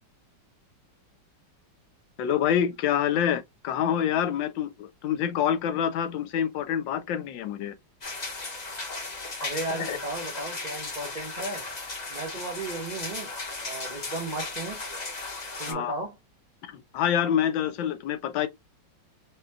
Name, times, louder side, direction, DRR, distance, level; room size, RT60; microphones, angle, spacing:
voice 1, 2.2-7.8 9.7-10.0 15.7-15.9 16.6-18.5, left 9 dB, 75° left, 1.3 m, -27 dB
sound 1, 8.0-15.7, left 3 dB, 30° left, 0.8 m, -36 dB
voice 2, 9.4-11.7 12.1-13.3 13.6-14.8 15.6-16.2, right 2 dB, 70° right, 0.4 m, -35 dB
5.0 x 2.2 x 2.7 m
omnidirectional pair, 2.2 m